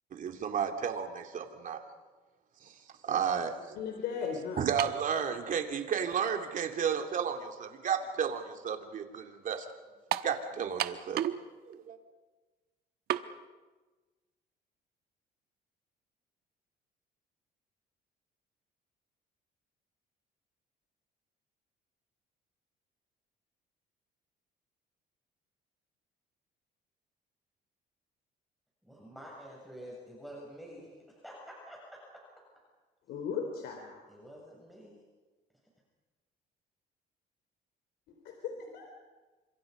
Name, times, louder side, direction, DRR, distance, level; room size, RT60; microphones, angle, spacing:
voice 1, 0.1-1.8 2.6-2.7 3.0-3.8 4.6-9.6 10.2-11.2 11.6-12.0, right 7 dB, 50° right, 4 dB, 3.0 m, -33 dB
voice 2, 3.8-4.7 33.1-34.0 38.1-38.9, left 6 dB, 75° left, 3 dB, 3.7 m, -37 dB
sound 1, 4.8-5.1 6.0-6.1 10.1-10.4 10.8-11.4 11.7-11.8 13.1-13.3, right 11 dB, 70° right, 1.2 m, -31 dB
voice 3, 28.8-32.0 34.1-35.0, equal, ahead, -3 dB, 7.3 m, -48 dB
29.5 x 26.0 x 5.4 m, 1.3 s
cardioid pair, 110°, 17 cm